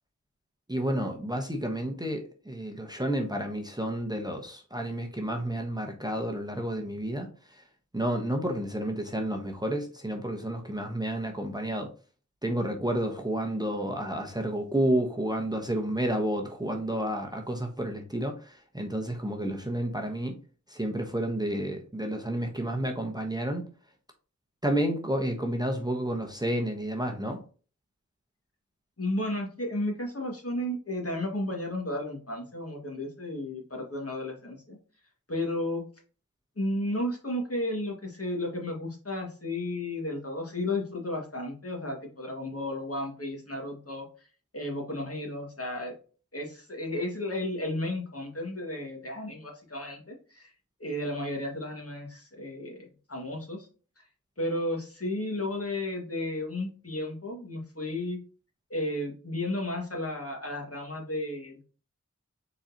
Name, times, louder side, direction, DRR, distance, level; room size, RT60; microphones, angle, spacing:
voice 1, 0.7-7.6 7.9-11.9 12.4-20.4 20.7-23.6 24.6-27.4, right 1 dB, 15° right, 3 dB, 0.9 m, -30 dB
voice 2, 29.0-34.8 35.3-35.8 36.6-44.1 44.5-46.0 46.3-50.5 50.8-53.7 54.0-54.1 54.4-58.2 58.7-61.6, left 1 dB, 50° left, 0 dB, 1.8 m, -33 dB
4.7 x 4.0 x 2.8 m, 0.38 s
wide cardioid pair, 40°, 31 cm